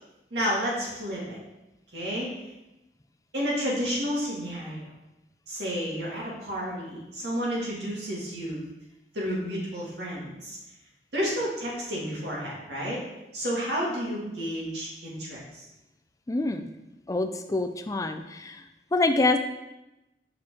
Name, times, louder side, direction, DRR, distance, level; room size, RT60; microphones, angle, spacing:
voice 1, 0.3-1.4 1.9-2.3 3.3-4.9 5.5-8.6 9.1-10.6 11.1-13.0 13.3-15.6, equal, 70° right, -5 dB, 2.1 m, -31 dB
voice 2, 16.3-16.7 17.1-18.6 18.9-19.4, left 2 dB, 20° left, 7 dB, 0.3 m, -26 dB
5.9 x 5.0 x 3.6 m, 0.96 s
head